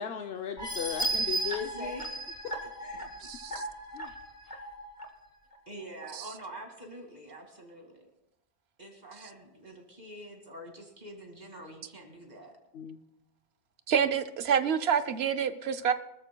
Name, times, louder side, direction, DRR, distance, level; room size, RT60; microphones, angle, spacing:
voice 1, 0.0-1.9 2.8-3.1 3.5-3.6 3.9-4.1 12.7-13.0, left 8 dB, 75° left, 6 dB, 0.9 m, -37 dB
sound 1, 0.6-5.0 5.5-5.6 6.0-6.1, right 2 dB, 45° left, 1.5 m, -35 dB
voice 2, 1.1-2.2 2.9-3.1 4.0-4.2 4.4-4.7 5.7-8.1 8.8-12.6, right 1 dB, 40° right, 2 dB, 2.4 m, -46 dB
voice 3, 3.2-3.6 13.9-15.9, right 7 dB, 80° right, 11 dB, 0.9 m, -27 dB
24.0 x 13.5 x 2.2 m, 0.86 s
omnidirectional pair, 1.1 m